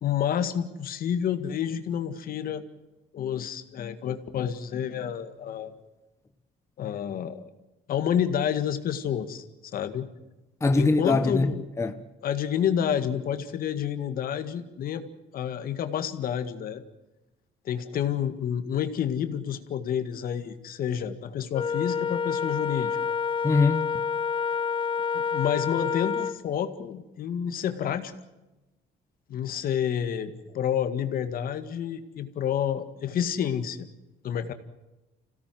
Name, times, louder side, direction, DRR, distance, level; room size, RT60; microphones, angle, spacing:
voice 1, 0.0-2.6 3.1-5.7 6.8-7.5 7.9-9.4 9.7-10.1 10.8-11.6 12.2-15.1 15.3-16.8 17.7-23.0 25.1-28.1 29.3-33.8 34.2-34.5, left 9 dB, 60° left, 2.0 m, -29 dB
voice 2, 10.6-12.0 23.4-24.1, left 3 dB, 15° left, 1.2 m, -23 dB
Wind instrument woodwind instrument, 21.5-26.4, left 6 dB, 30° left, 0.7 m, -28 dB
26.5 x 17.0 x 7.8 m
cardioid pair, 110°, 17 cm